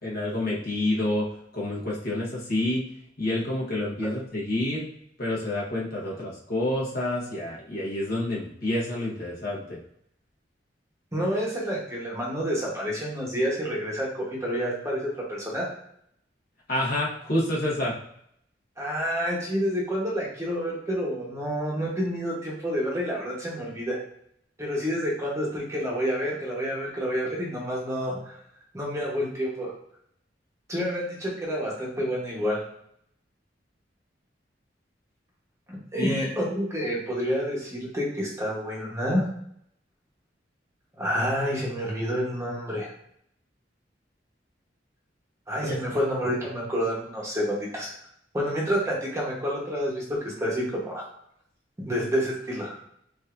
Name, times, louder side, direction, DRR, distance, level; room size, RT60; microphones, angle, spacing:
voice 1, 0.0-2.8 3.2-4.9 5.2-9.8 16.7-17.9 36.0-36.3 45.6-45.8, left 1 dB, 55° left, -5 dB, 1.1 m, -28 dB
voice 2, 11.1-15.0 15.3-15.7 18.8-24.0 24.6-28.4 28.7-29.7 30.7-32.6 35.7-39.2 41.0-42.9 45.5-47.9 48.3-51.0 51.8-52.8, equal, 15° right, -4 dB, 0.9 m, -28 dB
4.8 x 2.7 x 2.5 m, 0.70 s
head